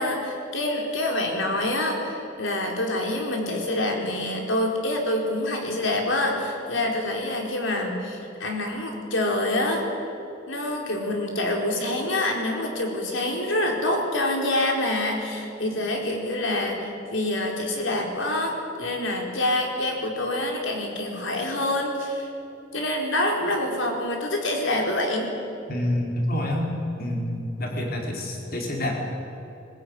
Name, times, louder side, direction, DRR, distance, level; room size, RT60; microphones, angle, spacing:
voice 1, 0.0-10.1 10.5-22.3 22.7-25.3, left 1 dB, 70° left, 1 dB, 4.5 m, -26 dB
voice 2, 25.7-26.7 27.0-29.0, left 1 dB, 50° left, 0 dB, 4.5 m, -27 dB
21.0 x 20.5 x 9.7 m, 2.9 s
head